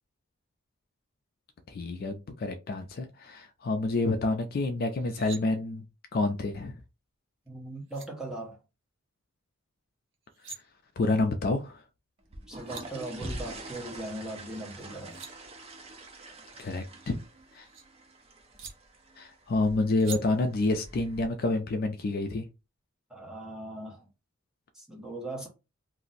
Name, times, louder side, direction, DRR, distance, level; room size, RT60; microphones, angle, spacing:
voice 1, 1.7-5.8 6.1-6.8 11.0-11.8 16.6-17.2 17.5-17.7 19.2-22.4, left 2 dB, 45° left, 0.3 m, -28 dB
sound 1, 4.9-5.4 7.5-7.6 7.9-8.1 10.1-10.6 12.2-12.3 12.5-12.8 14.8-15.3 16.8-17.8 18.6-18.7 20.0-20.2, right 5 dB, 60° right, 0.7 m, -44 dB
voice 2, 7.5-8.6 12.5-15.2 23.1-24.1 24.7-25.5, right 1 dB, 5° right, 0.8 m, -39 dB
sound 2, 12.2-21.3, right 1 dB, 30° right, 0.5 m, -45 dB
2.5 x 2.0 x 3.8 m
head